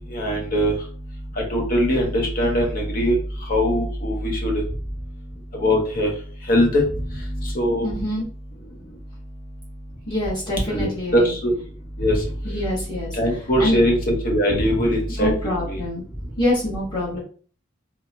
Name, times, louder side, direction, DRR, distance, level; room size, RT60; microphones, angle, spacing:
voice 1, 0.1-0.7 1.5-3.2 3.5-4.5 5.6-6.1 6.5-6.8 7.4-7.9 10.7-11.5 12.0-12.2 13.1-15.3 15.7-15.8, equal, 45° left, 0 dB, 0.9 m, -21 dB
voice 2, 7.8-8.2 10.1-11.3 12.0-12.1 12.4-13.2 13.6-13.8 15.2-16.0 16.4-17.2, left 1 dB, 25° left, -8 dB, 1.5 m, -25 dB
3.5 x 2.1 x 2.5 m, 0.42 s
head